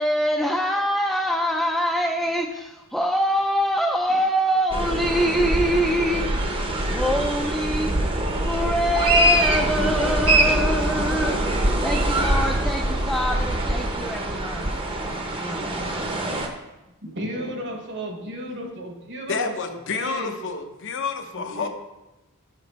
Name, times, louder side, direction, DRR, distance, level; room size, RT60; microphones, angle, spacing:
voice 1, 0.0-6.3 6.8-7.9 8.4-11.4 11.8-15.8, equal, ahead, 0 dB, 0.3 m, -24 dB
sound 1, 4.7-16.5, right 1 dB, 25° right, 0.7 m, -23 dB
voice 2, 17.0-20.5 21.3-21.7, equal, 55° right, 2 dB, 1.1 m, -34 dB
voice 3, 19.3-21.7, left 5 dB, 60° left, 6 dB, 0.6 m, -29 dB
5.9 x 5.2 x 4.1 m, 1.0 s
head